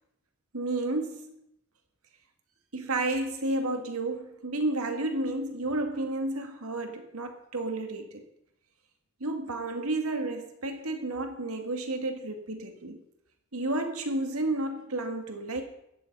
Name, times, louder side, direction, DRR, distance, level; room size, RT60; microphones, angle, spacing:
voice 1, 0.5-1.3 2.7-8.2 9.2-13.0 13.5-15.6, right 2 dB, 85° right, 5 dB, 2.1 m, -31 dB
14.5 x 10.5 x 5.5 m, 0.79 s
head